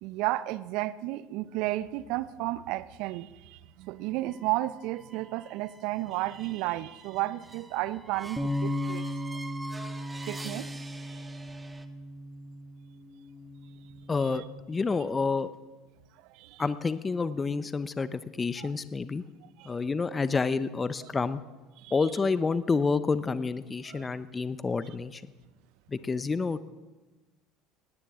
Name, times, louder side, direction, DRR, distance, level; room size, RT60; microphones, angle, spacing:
voice 1, 0.0-9.0 10.3-10.7 11.1-11.2 14.3-14.4 16.3-16.6 18.6-18.7 19.6-19.7 21.0-21.1 21.8-21.9 23.9-24.1, right 17 dB, 60° right, 18 dB, 0.6 m, -33 dB
sound 1, 4.1-11.8, right 2 dB, 15° right, 1.4 m, -46 dB
Bass guitar, 8.4-14.6, left 1 dB, 5° left, 2.1 m, -36 dB
voice 2, 14.1-15.5 16.6-19.2 19.6-21.4 21.9-25.2 25.9-26.6, left 4 dB, 25° left, 14 dB, 0.8 m, -29 dB
19.5 x 18.0 x 3.7 m, 1.2 s
hypercardioid pair, 70°, 0 cm